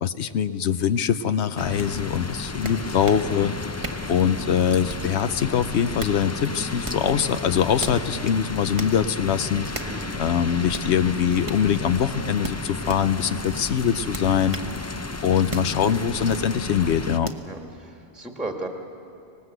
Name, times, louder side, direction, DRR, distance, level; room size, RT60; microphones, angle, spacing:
voice 1, 0.0-3.5 4.1-9.7 10.2-14.6 15.2-17.3, left 8 dB, 85° left, 12 dB, 1.0 m, -23 dB
sound 1, 1.6-17.2, left 3 dB, 20° left, 0.4 m, -33 dB
sound 2, 1.8-1.9 2.6-3.3 3.8-4.1 4.9-5.2 5.8-6.2 6.8-7.1 7.8-8.0 8.8-9.0 9.7-10.0 10.7-10.9 11.4-11.6 12.4-13.0 14.1-14.7 15.5-15.7 16.3-16.5 17.2-17.5, right 3 dB, 30° right, 1.0 m, -35 dB
voice 2, 9.8-10.2 17.4-18.7, right 2 dB, ahead, 2 dB, 1.5 m, -35 dB
24.5 x 19.5 x 8.0 m, 2.6 s
omnidirectional pair, 1.1 m